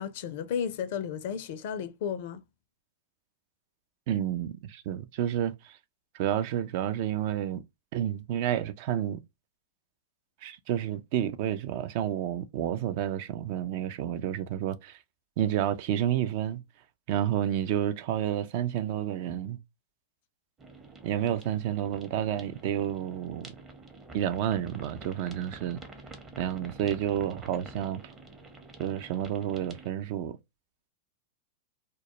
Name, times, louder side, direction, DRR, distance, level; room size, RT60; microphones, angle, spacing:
voice 1, 0.0-2.4, left 7 dB, 55° left, 0.4 m, -33 dB
voice 2, 4.1-5.8 6.1-7.6 7.9-9.2 10.4-15.0 15.4-16.6 17.1-19.6 21.0-23.5 24.1-25.8 26.4-28.0 28.8-30.4, right 10 dB, 50° right, 0.3 m, -30 dB
sound 1, 20.6-29.9, right 2 dB, 20° right, 0.6 m, -48 dB
2.2 x 2.0 x 2.8 m
hypercardioid pair, 100°, 0 cm